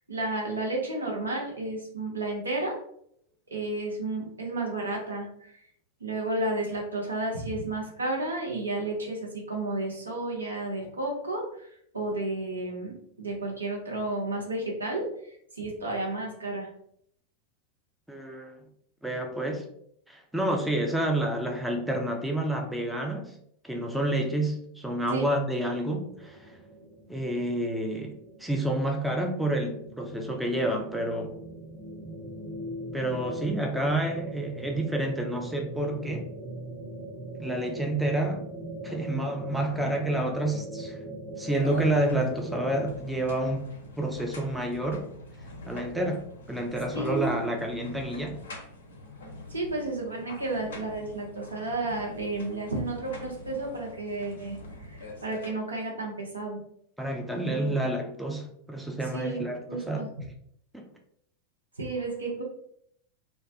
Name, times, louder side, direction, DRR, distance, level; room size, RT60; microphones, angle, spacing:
voice 1, 0.1-2.8 3.5-5.6 6.0-11.7 11.9-16.7 25.1-25.3 46.9-47.3 49.5-56.6 57.5-57.8 59.1-60.1 61.8-62.4, right 2 dB, 75° right, -1 dB, 0.7 m, -32 dB
voice 2, 18.1-18.6 19.0-19.7 20.1-23.3 23.6-26.6 27.1-31.3 32.9-36.3 37.4-38.5 38.8-41.0 41.4-43.7 44.0-45.1 45.7-48.4 57.0-60.1 60.7-60.9, right 1 dB, 5° right, 2 dB, 0.4 m, -29 dB
sound 1, 25.8-43.0, right 1 dB, 25° right, 0.7 m, -41 dB
sound 2, 41.5-55.5, left 1 dB, 65° left, 0.4 m, -44 dB
2.3 x 2.1 x 2.6 m, 0.69 s
figure-of-eight pair, 90°, 0 cm